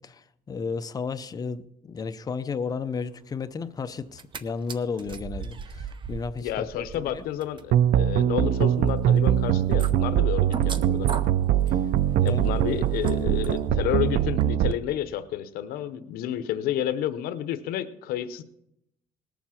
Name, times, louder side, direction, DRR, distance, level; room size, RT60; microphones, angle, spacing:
voice 1, 0.0-7.3 11.7-11.8 12.2-12.6, left 5 dB, 25° left, 0.6 m, -33 dB
sound 1, 4.0-4.4 4.7-14.1 14.4-14.5, right 5 dB, 30° right, 0.8 m, -39 dB
voice 2, 6.4-11.1 12.2-18.4, left 11 dB, 80° left, 0.8 m, -30 dB
sound 2, 7.7-14.7, right 11 dB, 65° right, 0.5 m, -22 dB
19.0 x 7.1 x 5.8 m
cardioid pair, 150°, 15 cm